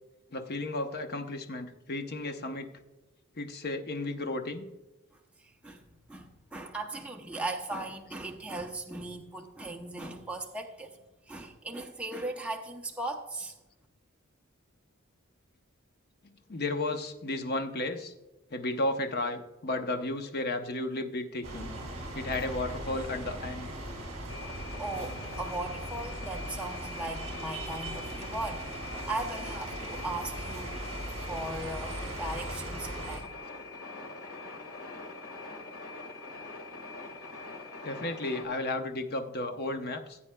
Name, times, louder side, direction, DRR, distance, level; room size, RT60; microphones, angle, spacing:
voice 1, 0.3-2.7 3.4-4.7 16.5-18.1 18.5-21.7 22.1-23.7 37.8-40.2, left 2 dB, 50° left, 6 dB, 0.8 m, -33 dB
voice 2, 6.1-10.9 11.3-13.5 24.8-30.8 31.3-33.3, right 2 dB, 5° right, 1 dB, 0.6 m, -38 dB
sound 1, 21.4-33.2, right 1 dB, 30° right, 3.0 m, -39 dB
sound 2, 24.3-38.5, left 4 dB, 80° left, 1.7 m, -44 dB
15.5 x 8.5 x 2.2 m, 1.0 s
head